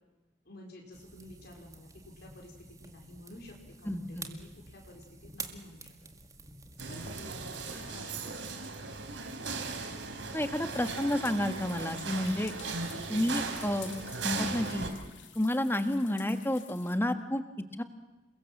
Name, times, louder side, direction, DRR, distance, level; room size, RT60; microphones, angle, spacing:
voice 1, 0.4-5.9 6.9-7.2 7.7-8.7, left 1 dB, 60° left, 0 dB, 4.4 m, -51 dB
sound 1, 0.9-8.0, right 3 dB, 20° right, 2.2 m, -48 dB
voice 2, 3.9-4.3 10.3-12.5 13.1-13.9 14.2-14.9 15.3-17.4 17.8-17.9, left 1 dB, 10° left, 9 dB, 1.6 m, -30 dB
sound 2, 6.8-14.9, right 4 dB, 85° right, 3.9 m, -38 dB
sound 3, 10.7-17.0, left 9 dB, 90° left, 3.0 m, -51 dB
29.0 x 22.5 x 7.4 m, 1.1 s
head